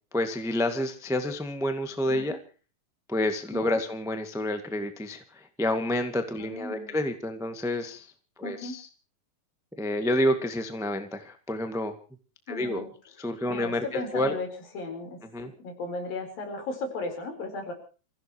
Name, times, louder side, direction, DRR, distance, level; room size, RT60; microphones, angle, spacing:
voice 1, 0.1-2.4 3.1-8.1 8.4-8.9 9.8-11.9 12.5-12.9 13.2-14.3 15.3-15.5, left 1 dB, 5° right, 7 dB, 0.6 m, -29 dB
voice 2, 6.4-6.9 8.4-8.8 12.5-12.9 13.5-14.5 14.7-17.7, left 3 dB, 70° left, 5 dB, 6.0 m, -36 dB
28.0 x 16.0 x 3.1 m, 0.37 s
omnidirectional pair, 4.2 m